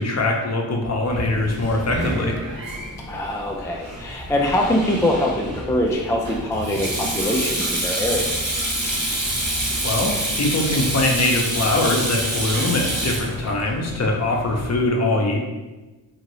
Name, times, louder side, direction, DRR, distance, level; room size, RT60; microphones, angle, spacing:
voice 1, 0.0-2.4 9.8-15.4, left 2 dB, 35° left, 1 dB, 0.7 m, -22 dB
Sink (filling or washing), 1.1-14.8, right 1 dB, 35° right, 1.3 m, -27 dB
voice 2, 3.1-8.3, left 1 dB, 10° left, -1 dB, 0.3 m, -23 dB
2.8 x 2.5 x 3.0 m, 1.1 s
supercardioid pair, 40°, 46 cm